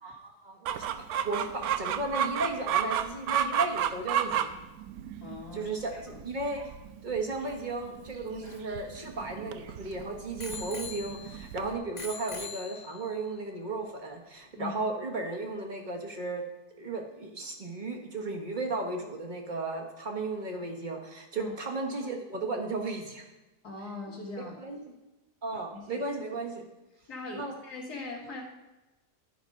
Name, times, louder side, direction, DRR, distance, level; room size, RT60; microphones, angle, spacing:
voice 1, 0.0-4.5 5.5-6.7 7.0-16.4 16.8-23.2 24.6-24.9 25.4-26.6 27.3-27.5, right 3 dB, 30° right, 2 dB, 1.3 m, -35 dB
Chicken rooster, 0.7-11.8, right 9 dB, 75° right, 1.0 m, -33 dB
voice 2, 5.2-6.2 14.5-14.8 21.4-21.5 23.6-24.6 25.5-26.1 27.1-28.4, left 3 dB, 70° left, -7 dB, 2.1 m, -41 dB
Bicycle bell, 8.1-9.7 10.4-11.5 12.0-13.2 13.9-14.0, left 5 dB, 50° left, 0.5 m, -43 dB
12.0 x 5.1 x 5.3 m, 1.0 s
omnidirectional pair, 1.7 m